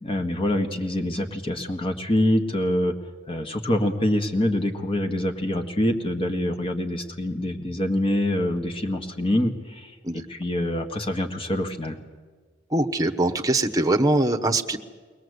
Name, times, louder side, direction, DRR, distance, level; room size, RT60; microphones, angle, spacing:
voice 1, 0.0-2.9 3.3-9.9 10.3-12.0, left 1 dB, 30° left, 5 dB, 1.8 m, -25 dB
voice 2, 12.7-14.8, right 2 dB, 20° right, 5 dB, 1.1 m, -22 dB
23.0 x 18.5 x 8.1 m, 1.4 s
head